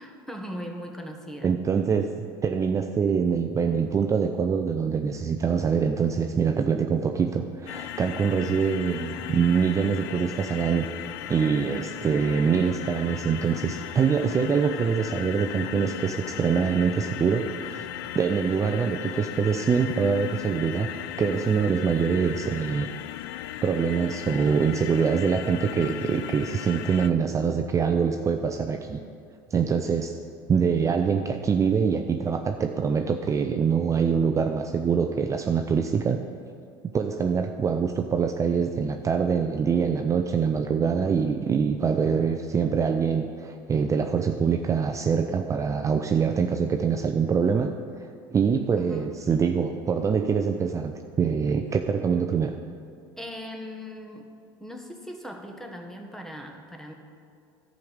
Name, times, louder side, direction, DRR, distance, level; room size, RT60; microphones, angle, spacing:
voice 1, 0.0-1.5 48.8-49.2 53.2-54.3 54.6-56.9, equal, 5° left, 3 dB, 1.3 m, -39 dB
voice 2, 1.4-2.1 2.4-10.9 11.3-17.9 18.1-20.9 21.2-22.9 23.6-29.0 29.5-30.2 30.5-36.2 36.9-52.5, right 6 dB, 25° right, 6 dB, 0.5 m, -24 dB
sound 1, 7.7-27.1, left 13 dB, 75° left, 0.4 m, -37 dB
11.5 x 5.2 x 7.9 m, 2.4 s
supercardioid pair, 95°, 12 cm